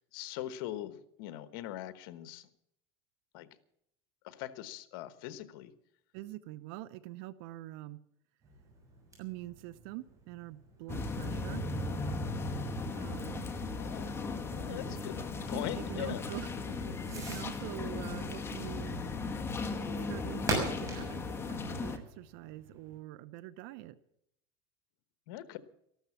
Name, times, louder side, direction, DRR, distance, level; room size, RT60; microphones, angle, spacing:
voice 1, 0.1-2.5 3.3-3.5 4.2-5.7 13.7-14.1 14.5-16.2 25.3-25.6, left 13 dB, 80° left, 13 dB, 1.2 m, -41 dB
voice 2, 6.1-8.0 9.2-11.7 12.9-13.5 14.7-15.0 15.5-16.5 17.1-19.0 20.1-24.0, right 16 dB, 70° right, 17 dB, 0.7 m, -44 dB
Fireworks, 8.4-23.0, right 2 dB, 25° right, 6.7 m, -44 dB
sound 1, 10.9-22.0, left 3 dB, 20° left, 1.5 m, -37 dB
14.0 x 12.5 x 7.2 m, 0.74 s
supercardioid pair, 130°, 13 cm